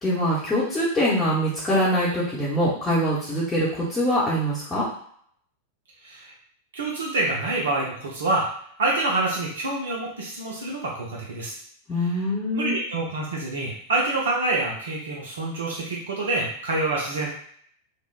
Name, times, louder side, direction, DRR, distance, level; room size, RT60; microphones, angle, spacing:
voice 1, 0.0-4.8 11.9-12.8, equal, 10° left, -10 dB, 0.8 m, -23 dB
voice 2, 6.7-8.5 8.8-11.5 12.5-17.3, right 2 dB, 65° right, -3 dB, 0.6 m, -26 dB
3.2 x 2.2 x 2.3 m, 0.62 s
figure-of-eight pair, 90°, 0 cm